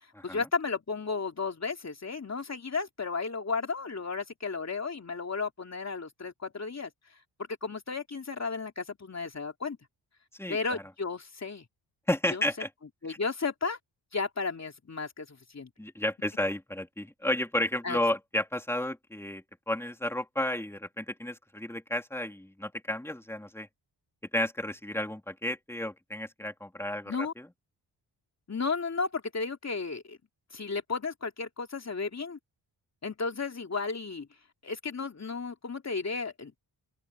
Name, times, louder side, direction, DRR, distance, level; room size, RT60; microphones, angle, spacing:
voice 1, 0.2-6.9 7.6-9.8 10.5-11.6 12.3-12.4 13.0-13.8 14.1-15.7 17.8-18.0 27.1-27.3 28.5-30.2 30.5-32.4 33.0-34.3 34.6-36.5, left 4 dB, 35° left, 3.1 m, -33 dB
voice 2, 10.4-10.8 12.1-12.7 13.1-13.2 15.8-23.7 24.3-27.5, left 1 dB, 5° left, 3.1 m, -32 dB
open air
cardioid pair, 65°, 45 cm